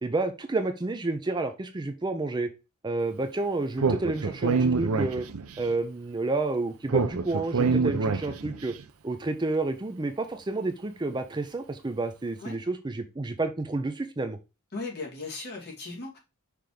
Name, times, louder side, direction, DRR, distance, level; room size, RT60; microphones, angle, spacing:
voice 1, 0.0-2.5 2.8-5.2 5.6-8.7 9.0-14.4, right 2 dB, 20° right, 8 dB, 0.5 m, -30 dB
Speech, 3.8-5.6 6.9-8.6, right 4 dB, 80° right, 0.6 m, -26 dB
voice 2, 14.7-16.2, left 3 dB, 50° left, -2 dB, 2.6 m, -37 dB
6.0 x 3.5 x 4.9 m, 0.27 s
head